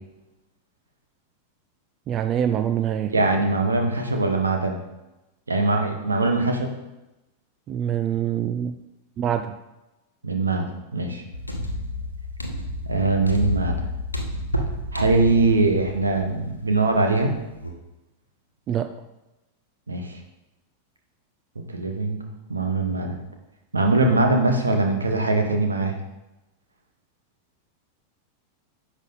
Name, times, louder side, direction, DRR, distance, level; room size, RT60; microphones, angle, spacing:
voice 1, 2.1-3.1 7.7-8.7 9.2-9.6 18.7-19.0, right 10 dB, 30° right, 9 dB, 0.5 m, -25 dB
voice 2, 3.1-4.8 5.5-6.7 10.2-10.7 10.9-11.2 12.9-13.7 14.9-17.3 19.9-20.2 21.7-23.2 23.7-26.0, right 3 dB, 75° right, 4 dB, 1.3 m, -22 dB
sound 1, 11.3-17.4 17.6-17.7, left 1 dB, 85° left, 1.1 m, -30 dB
10.5 x 6.3 x 4.0 m, 0.99 s
figure-of-eight pair, 90°, 0 cm